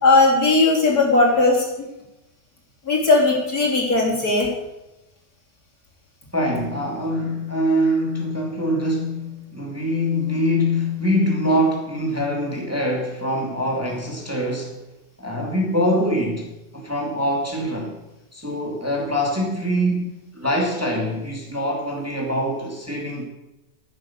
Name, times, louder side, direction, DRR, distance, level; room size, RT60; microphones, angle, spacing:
voice 1, 0.0-1.7 2.9-4.5, left 3 dB, 55° left, -3 dB, 4.0 m, -17 dB
voice 2, 6.3-14.8 15.2-16.5 16.7-17.9 18.3-23.2, equal, 10° right, -1 dB, 2.6 m, -24 dB
14.5 x 9.8 x 7.3 m, 0.95 s
omnidirectional pair, 1.9 m